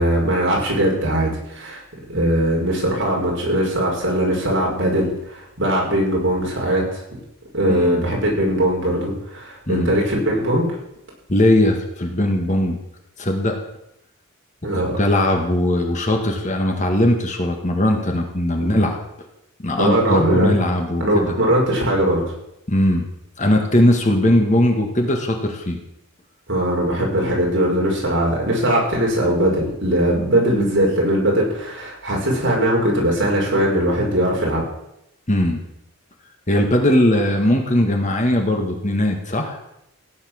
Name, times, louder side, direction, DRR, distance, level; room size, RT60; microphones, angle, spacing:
voice 1, 0.0-1.8 2.1-7.0 7.5-10.7 14.6-14.9 18.6-18.8 19.8-20.5 21.0-22.2 26.5-34.6, right 1 dB, 55° right, -2 dB, 5.5 m, -20 dB
voice 2, 7.7-8.1 9.7-10.0 11.3-12.8 13.2-13.6 14.7-19.0 19.6-21.3 22.7-23.1 23.4-25.8 35.3-35.6 36.5-39.6, left 1 dB, 35° left, 3 dB, 1.9 m, -19 dB
16.5 x 9.8 x 6.5 m, 0.83 s
head